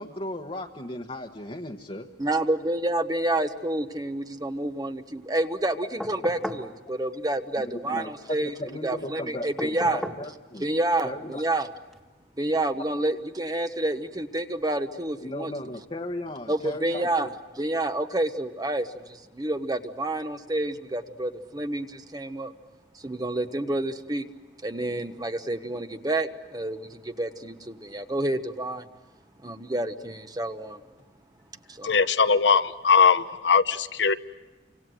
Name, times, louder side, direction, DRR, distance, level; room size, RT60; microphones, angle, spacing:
voice 1, 0.0-2.1 7.8-10.6 11.0-11.4 15.2-17.3, left 1 dB, 35° left, 0 dB, 1.2 m, -36 dB
voice 2, 2.2-8.5 8.8-10.0 10.6-11.7 12.4-15.5 16.5-17.3 17.6-22.5 23.0-24.2 24.6-28.9 29.4-30.8 31.7-31.9, right 1 dB, 20° right, 8 dB, 1.1 m, -29 dB
sound 1, 6.0-6.7 9.6-10.3 11.9-12.0, left 1 dB, ahead, 1.8 m, -35 dB
voice 3, 31.8-34.1, left 5 dB, 80° left, 11 dB, 1.0 m, -20 dB
29.5 x 25.5 x 7.8 m, 1.2 s
head